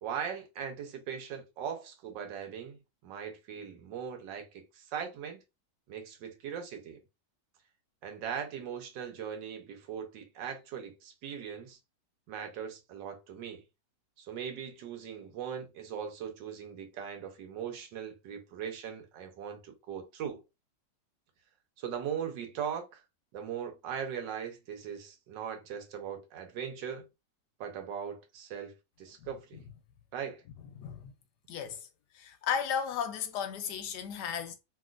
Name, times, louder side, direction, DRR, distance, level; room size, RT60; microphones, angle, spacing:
voice 1, 0.0-5.4 5.9-7.0 8.0-11.8 12.3-13.6 14.2-20.4 21.8-23.0 23.3-27.0 27.6-29.6 30.1-30.4, right 8 dB, 90° right, 1.4 m, -39 dB
voice 2, 30.8-31.1 31.5-31.9 32.1-34.6, left 7 dB, 75° left, 1.1 m, -34 dB
2.9 x 2.8 x 2.4 m
omnidirectional pair, 1.9 m